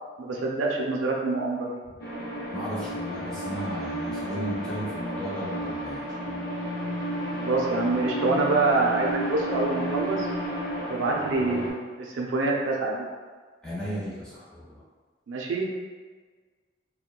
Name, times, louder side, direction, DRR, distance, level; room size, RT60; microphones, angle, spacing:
voice 1, 0.2-1.7 7.4-10.3 10.8-13.0 15.3-15.6, right 3 dB, 85° right, -1 dB, 0.4 m, -26 dB
sound 1, 2.0-11.7, equal, 50° left, 0.7 m, -32 dB
voice 2, 2.5-6.4 13.6-14.8, equal, 5° left, -10 dB, 0.9 m, -35 dB
3.7 x 2.2 x 2.3 m, 1.5 s
head